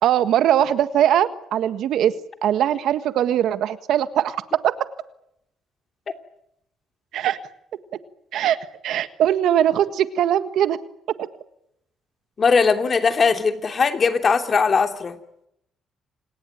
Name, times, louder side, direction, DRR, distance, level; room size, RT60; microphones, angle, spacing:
voice 1, 0.0-2.2 2.4-4.7 7.1-7.4 8.3-8.6 8.8-10.8, right 10 dB, 80° right, 12 dB, 1.6 m, -20 dB
voice 2, 12.4-15.2, left 5 dB, 40° left, 7 dB, 3.0 m, -19 dB
28.5 x 19.5 x 9.1 m, 0.78 s
cardioid pair, 90°, 0 cm